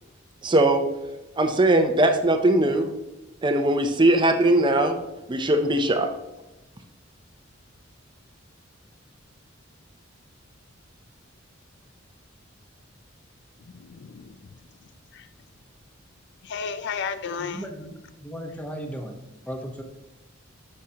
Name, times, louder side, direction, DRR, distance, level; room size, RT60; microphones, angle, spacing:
voice 1, 0.4-0.9 1.4-2.9 3.4-5.0 5.3-6.1, right 1 dB, 25° right, 7 dB, 0.6 m, -20 dB
voice 2, 13.7-14.4 15.1-15.3 16.4-17.6, left 6 dB, 60° left, 12 dB, 0.4 m, -33 dB
voice 3, 17.2-19.1 19.5-19.8, equal, 5° left, 4 dB, 1.0 m, -36 dB
11.5 x 6.4 x 2.9 m, 1.0 s
head